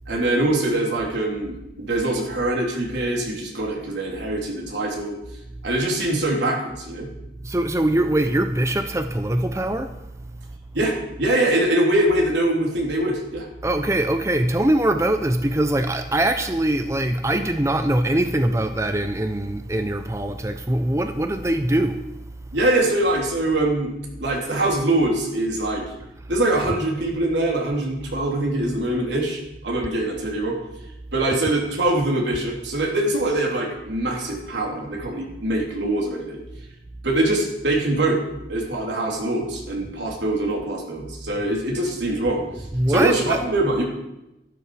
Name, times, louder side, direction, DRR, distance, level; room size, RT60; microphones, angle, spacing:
voice 1, 0.1-5.2 5.6-7.1 10.7-13.5 22.5-23.9 24.2-25.8 26.3-29.4 29.6-30.6 31.1-36.4 37.0-38.2 38.5-42.4 42.9-43.8, right 1 dB, 85° right, 3.5 m, -23 dB
voice 2, 7.4-9.9 13.6-22.0 26.6-26.7 42.7-43.4, right 1 dB, 15° right, 0.6 m, -22 dB
14.0 x 12.0 x 5.1 m
head